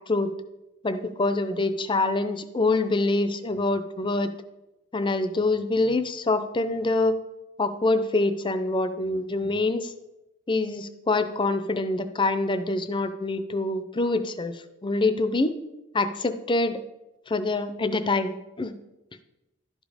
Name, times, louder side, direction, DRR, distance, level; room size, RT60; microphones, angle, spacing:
voice 1, 0.8-4.3 4.9-7.1 7.6-9.9 10.5-15.5 15.9-16.8 17.3-18.7, left 2 dB, 20° left, 11 dB, 0.5 m, -25 dB
11.5 x 5.2 x 4.9 m, 0.99 s
head